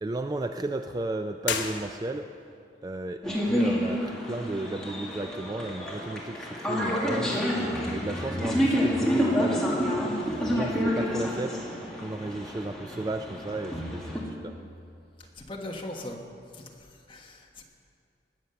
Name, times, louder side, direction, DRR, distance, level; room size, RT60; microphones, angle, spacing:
voice 1, 0.0-2.3 2.8-9.7 10.2-11.6 12.0-14.6, right 2 dB, 20° right, 7 dB, 0.3 m, -34 dB
sound 1, 1.4-2.5, left 6 dB, 80° left, 1.1 m, -33 dB
sound 2, 3.2-14.2, equal, 5° left, 2.0 m, -28 dB
voice 2, 15.4-16.2 16.5-17.6, left 1 dB, 25° left, 0 dB, 1.4 m, -40 dB
19.5 x 7.3 x 6.9 m, 2.4 s
head